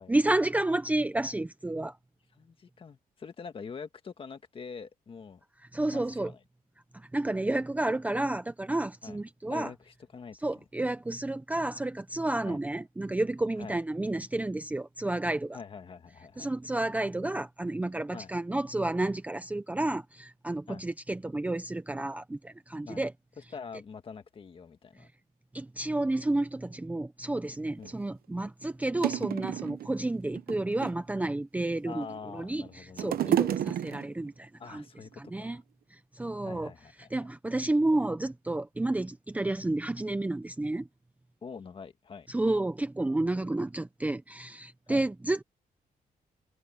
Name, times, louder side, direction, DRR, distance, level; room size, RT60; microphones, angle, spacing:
voice 1, 0.1-2.0 5.7-6.3 6.9-9.7 10.4-15.6 16.4-23.1 25.5-32.0 32.3-34.8 35.2-35.6 35.9-36.7 37.1-40.9 42.3-45.4, right 2 dB, 10° right, 0.6 m, -31 dB
voice 2, 2.4-5.4 5.9-6.4 9.0-9.2 9.5-10.6 12.4-12.6 13.6-13.8 15.5-16.5 18.1-18.3 20.7-20.8 22.9-23.0 23.5-25.1 27.8-28.0 31.9-33.8 34.6-35.6 36.4-37.3 41.4-42.3 44.9-45.1, left 5 dB, 35° left, 1.7 m, -45 dB
sound 1, 27.8-27.9 28.6-28.7 29.0-29.9 30.4-31.1 31.8-32.4 32.7-34.3 35.1-35.2, right 11 dB, 90° right, 0.9 m, -30 dB
wide cardioid pair, 170°, 15 cm